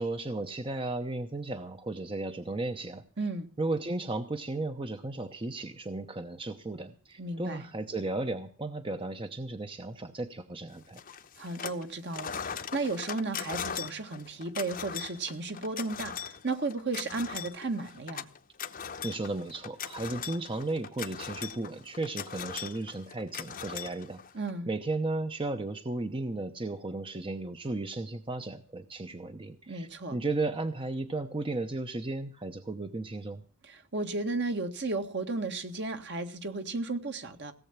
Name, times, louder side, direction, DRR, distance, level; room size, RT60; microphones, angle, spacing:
voice 1, 0.0-3.0 3.6-11.0 19.0-24.2 24.7-33.4, right 2 dB, 25° right, 8 dB, 0.8 m, -35 dB
voice 2, 3.2-3.5 7.2-7.7 11.4-18.3 24.3-24.7 29.7-30.2 33.6-37.5, right 3 dB, 50° right, 7 dB, 1.7 m, -34 dB
sound 1, 11.0-11.8 12.1-24.5, left 7 dB, 40° left, 0.9 m, -40 dB
17.5 x 7.8 x 7.2 m, 0.42 s
head